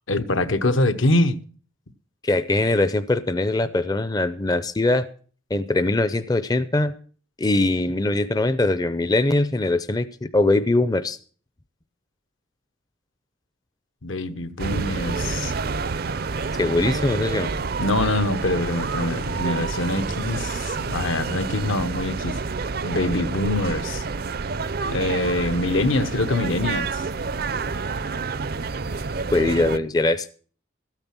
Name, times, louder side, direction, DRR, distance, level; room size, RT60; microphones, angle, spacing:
voice 1, 0.1-1.4 14.0-15.5 17.8-22.4 22.8-24.0 24.9-27.0, left 2 dB, 75° left, 1.0 m, -24 dB
voice 2, 2.2-5.1 5.5-6.9 7.4-11.2 16.6-17.5 29.3-30.3, left 2 dB, 20° left, 0.5 m, -22 dB
sound 1, 14.6-29.8, right 4 dB, 45° right, 0.5 m, -28 dB
13.5 x 9.0 x 5.9 m
head